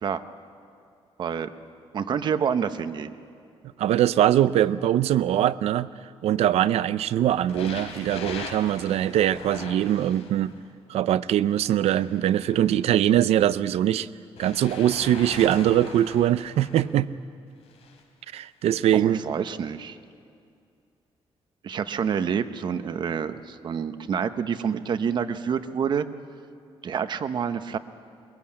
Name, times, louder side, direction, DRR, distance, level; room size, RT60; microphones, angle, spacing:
voice 1, 1.2-1.5 1.9-3.1 18.9-20.0 21.6-26.1 26.8-27.8, right 7 dB, 45° right, 10 dB, 0.9 m, -28 dB
voice 2, 3.8-5.9 6.2-10.6 10.9-14.1 14.4-17.1 18.3-19.2, right 11 dB, 85° right, 16 dB, 0.6 m, -22 dB
sound 1, 7.5-10.6 11.5-13.3 14.4-16.9 17.7-18.0 18.8-18.9, left 5 dB, 90° left, 3.2 m, -41 dB
22.5 x 22.0 x 8.7 m, 2.4 s
cardioid pair, 165°, 10 cm